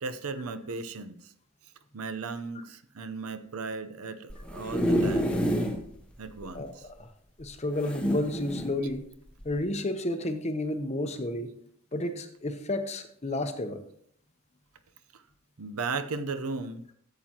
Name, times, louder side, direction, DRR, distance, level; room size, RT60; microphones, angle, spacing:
voice 1, 0.0-1.3 1.9-5.4 6.2-6.8 15.1-15.2 15.6-16.8, right 4 dB, 80° right, 11 dB, 0.7 m, -36 dB
sound 1, 4.3-5.8 6.3-6.4 6.6-6.7 7.8-8.7 9.4-9.6, equal, 5° left, 0.8 m, -28 dB
voice 2, 7.4-9.1 9.4-11.5 11.9-13.8, left 1 dB, 30° left, 7 dB, 0.8 m, -31 dB
13.0 x 7.6 x 2.9 m, 0.64 s
head